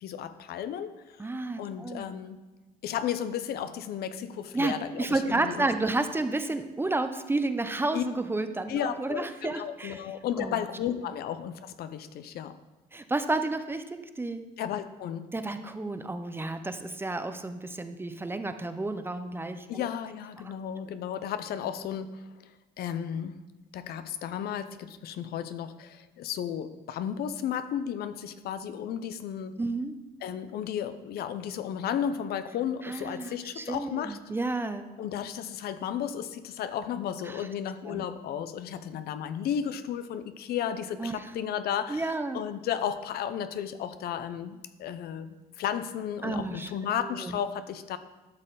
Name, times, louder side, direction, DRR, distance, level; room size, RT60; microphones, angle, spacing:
voice 1, 0.0-1.2 1.6-2.4 2.8-5.7 7.9-8.1 8.7-12.6 14.6-15.3 19.7-22.3 22.8-23.4 23.7-29.6 30.2-34.2 35.0-48.0, left 9 dB, 70° left, 12 dB, 0.6 m, -34 dB
voice 2, 1.2-2.1 4.5-10.0 10.4-10.6 12.9-14.5 15.3-19.8 20.4-20.5 29.6-30.0 32.8-34.9 37.3-37.5 37.9-38.1 41.0-41.3 41.9-42.4 46.2-46.7 47.0-47.4, right 2 dB, 15° right, 9 dB, 0.6 m, -31 dB
12.0 x 6.3 x 3.9 m, 1.2 s
cardioid pair, 110°, 17 cm